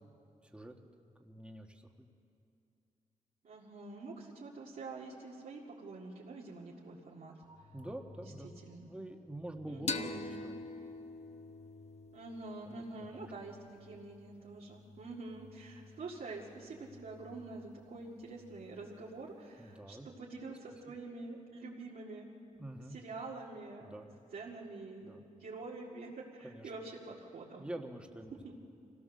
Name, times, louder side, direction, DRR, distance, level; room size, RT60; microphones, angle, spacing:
voice 1, 0.0-2.1 7.7-8.5 8.8-10.6 12.7-13.3 19.6-20.1 20.7-20.8 22.6-23.0 23.8-24.1 25.0-25.3 26.4-26.7 27.6-28.5, right 1 dB, 5° right, 3 dB, 1.4 m, -47 dB
voice 2, 3.4-7.3 8.2-8.9 9.7-10.2 12.1-22.3 22.9-24.0 24.3-27.7 28.4-28.5, right 3 dB, 80° right, -5 dB, 2.1 m, -46 dB
sound 1, 7.4-19.4, left 3 dB, 35° right, 2.0 m, -59 dB
sound 2, 9.9-13.2, left 3 dB, 50° left, 0.9 m, -42 dB
25.5 x 17.0 x 6.6 m, 2.6 s
wide cardioid pair, 95°, 15 cm